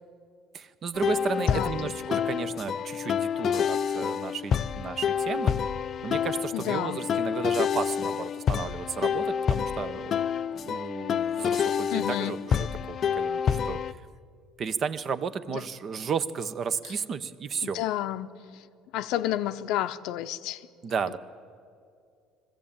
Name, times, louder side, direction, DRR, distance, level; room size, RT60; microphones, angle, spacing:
voice 1, 0.5-5.6 6.0-10.2 10.5-14.0 14.6-17.8 20.8-21.2, right 6 dB, 40° right, 0.9 m, -33 dB
sound 1, 0.9-13.9, left 7 dB, 40° left, 0.4 m, -28 dB
voice 2, 1.4-2.2 6.5-7.0 11.9-12.4 15.5-15.6 17.6-18.6 18.9-20.7, left 13 dB, 70° left, 0.7 m, -31 dB
21.5 x 14.5 x 8.8 m
cardioid pair, 125°, 0 cm